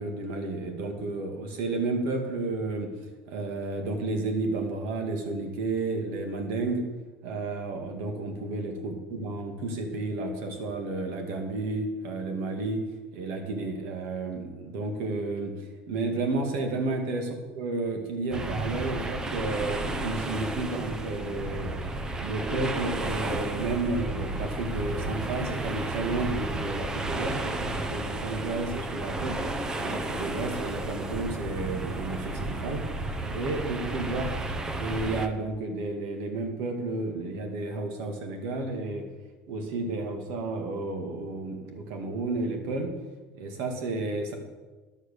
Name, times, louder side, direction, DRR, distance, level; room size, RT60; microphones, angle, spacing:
voice 1, 0.0-2.9 3.3-6.8 7.2-12.8 13.1-17.3 17.6-21.7 22.1-29.4 29.8-32.9 33.3-34.3 34.8-39.1 39.5-42.9 43.4-44.4, right 3 dB, 65° right, 4 dB, 2.3 m, -32 dB
sound 1, 18.3-35.3, right 2 dB, 15° right, 0.7 m, -33 dB
11.5 x 6.4 x 6.9 m, 1.2 s
cardioid pair, 150°, 4 cm